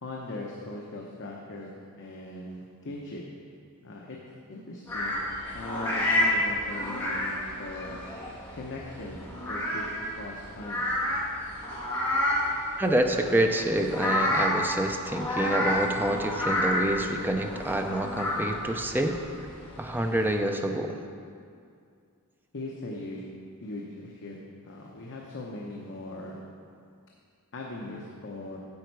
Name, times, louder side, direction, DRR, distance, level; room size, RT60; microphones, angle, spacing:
voice 1, 0.0-1.7 2.0-3.2 3.8-4.2 4.5-5.2 5.5-8.0 8.5-9.2 9.5-10.8 22.5-23.2 23.6-24.4 24.6-26.4 27.5-28.6, left 2 dB, 55° left, -2 dB, 0.8 m, -39 dB
sound 1, 4.9-20.3, left 1 dB, 10° left, 2.3 m, -30 dB
voice 2, 12.8-19.2 19.8-21.0, right 1 dB, 10° right, 4 dB, 0.5 m, -27 dB
9.6 x 6.9 x 4.6 m, 2.3 s
head